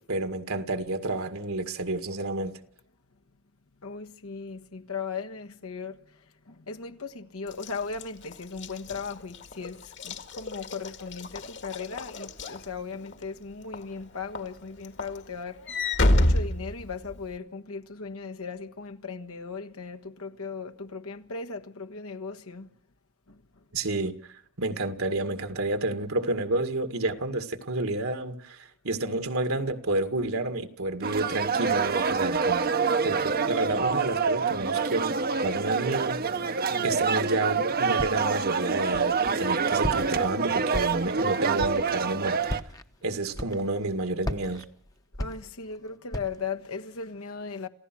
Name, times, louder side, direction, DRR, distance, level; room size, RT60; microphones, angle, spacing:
voice 1, 0.1-2.5 23.7-32.7 33.0-42.4 43.0-44.6, right 2 dB, 75° right, 2.0 m, -30 dB
voice 2, 3.8-6.0 6.5-9.8 10.0-15.6 16.1-22.7 36.7-37.0 45.2-47.7, left 5 dB, 75° left, 1.4 m, -37 dB
Walk footsteps / Slam, 7.5-13.2 13.7-14.0 14.4-17.4, left 1 dB, 55° left, 1.9 m, -29 dB
sound 1, 31.0-42.6, right 5 dB, 45° right, 0.9 m, -26 dB
Walk footsteps, 38.0-38.4 38.9-39.5 39.8-40.3 40.7-41.2 41.6-41.9 42.4-42.8 43.3-43.9 44.2-45.8 46.1-46.5, equal, 15° left, 0.9 m, -35 dB
28.0 x 15.5 x 6.2 m
head